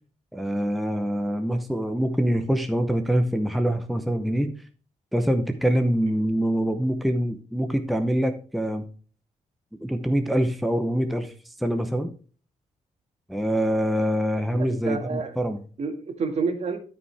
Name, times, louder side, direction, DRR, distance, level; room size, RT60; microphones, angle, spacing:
voice 1, 0.3-4.5 5.1-8.8 9.8-12.1 13.3-15.6, equal, ahead, 0.8 m, -25 dB
voice 2, 14.4-15.4 15.8-16.8, right 4 dB, 55° right, 2.0 m, -29 dB
12.5 x 5.6 x 3.4 m
cardioid pair, 125°, 13 cm